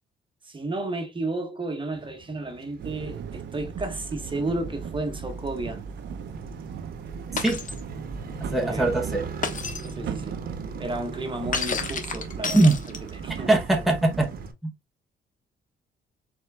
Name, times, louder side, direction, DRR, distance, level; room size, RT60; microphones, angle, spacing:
voice 1, 0.4-5.8 8.6-8.9 9.9-10.4 10.8-12.9 13.2-13.9, right 2 dB, 25° right, 1.3 m, -32 dB
Motorcycle, 1.9-14.5, right 4 dB, 45° right, 1.1 m, -41 dB
sound 1, 2.8-14.5, right 6 dB, 65° right, 0.7 m, -37 dB
Shatter, 7.4-7.8 9.4-9.9 11.5-13.2, left 5 dB, 40° left, 1.2 m, -30 dB
voice 2, 8.5-9.2 12.5-12.8 13.5-14.3 14.6-14.7, right 2 dB, ahead, 1.1 m, -21 dB
4.5 x 4.2 x 2.2 m
cardioid pair, 90°, 20 cm